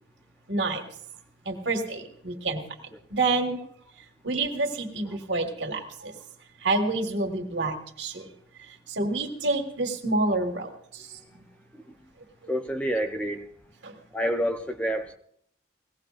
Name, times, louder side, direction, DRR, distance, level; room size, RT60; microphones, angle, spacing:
voice 1, 0.5-0.8 1.5-2.6 3.1-3.6 4.2-6.1 6.6-8.3 8.9-11.2 13.8-14.0, right 2 dB, 80° right, 3 dB, 1.8 m, -28 dB
voice 2, 12.5-13.5 14.1-15.2, equal, 5° left, 5 dB, 0.7 m, -28 dB
20.0 x 17.0 x 2.5 m, 0.66 s
head